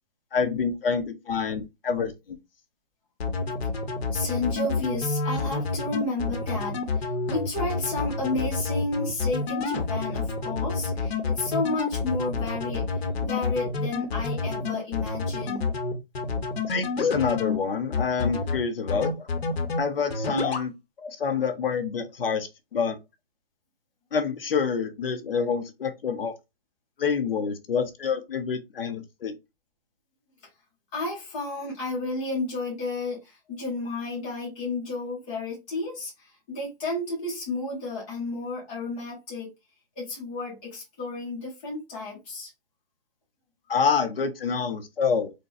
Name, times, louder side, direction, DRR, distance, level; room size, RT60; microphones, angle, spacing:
voice 1, 0.3-2.1 16.7-19.3 19.8-20.7 21.0-23.0 24.1-26.3 27.0-29.4 43.7-45.3, left 6 dB, 65° left, 0.7 m, -27 dB
sound 1, 3.2-17.6 17.9-18.6 18.9-19.8 20.1-20.7, left 4 dB, 80° left, 1.1 m, -28 dB
voice 2, 4.1-15.7 30.9-39.5 40.0-42.5, left 2 dB, 10° left, 0.8 m, -32 dB
4.0 x 2.2 x 2.4 m
hypercardioid pair, 170°, 31 cm